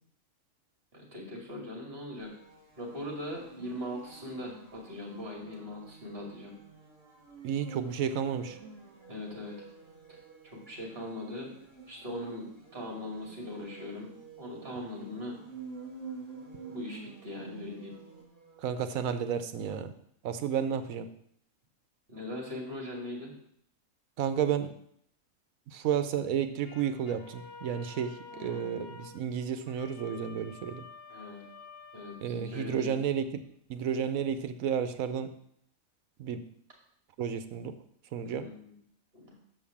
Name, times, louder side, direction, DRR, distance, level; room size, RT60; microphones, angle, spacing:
voice 1, 0.9-2.3 2.8-6.5 9.1-9.7 10.1-10.2 10.4-11.5 11.9-15.4 16.6-17.9 22.1-23.3 28.3-28.7 31.1-31.4 31.9-32.9 38.2-38.7 39.1-39.4, left 1 dB, 45° right, -1 dB, 2.7 m, -40 dB
sound 1, 2.2-18.8, right 5 dB, 60° right, 2.5 m, -49 dB
voice 2, 7.4-8.6 18.6-19.9 20.2-21.1 24.2-24.7 25.7-30.8 32.2-33.4 33.7-35.3 36.2-36.4 37.2-37.7 38.1-38.5, right 8 dB, 80° right, 10 dB, 1.1 m, -32 dB
sound 2, 26.6-32.9, left 4 dB, 85° left, 1.5 m, -50 dB
6.4 x 5.5 x 7.2 m, 0.68 s
omnidirectional pair, 1.5 m